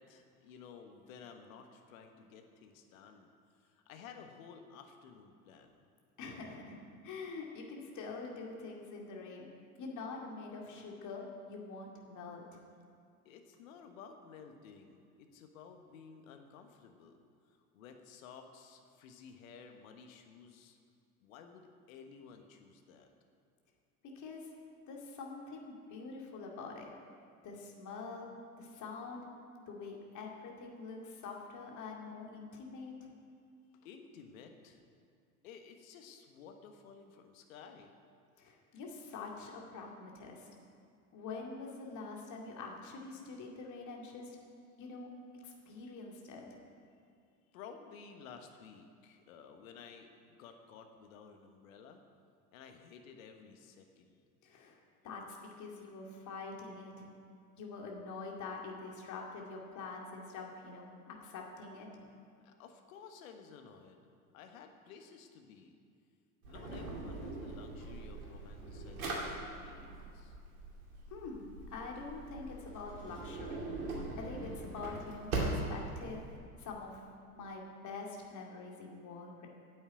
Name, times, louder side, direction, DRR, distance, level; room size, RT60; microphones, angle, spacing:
voice 1, 0.0-3.3 3.6-5.8 13.2-17.2 17.7-20.8 21.2-23.1 33.8-34.8 35.4-38.0 47.5-52.0 52.5-54.2 62.4-64.0 64.3-65.8 66.5-70.4, left 6 dB, 60° left, 5 dB, 1.3 m, -54 dB
voice 2, 6.2-6.8 7.0-9.5 9.8-12.6 24.2-24.5 24.9-26.9 27.4-28.3 28.6-29.2 29.7-33.1 38.4-40.5 41.1-44.4 44.8-45.1 45.4-46.4 54.4-54.8 55.0-57.1 57.6-62.0 71.1-73.7 74.2-76.2 76.6-77.0 77.3-79.5, left 4 dB, 40° left, 0 dB, 2.3 m, -45 dB
Drawer open or close, 66.4-76.4, right 2 dB, 65° right, 2.6 m, -41 dB
9.7 x 7.8 x 8.5 m, 2.3 s
figure-of-eight pair, 75°, 45 cm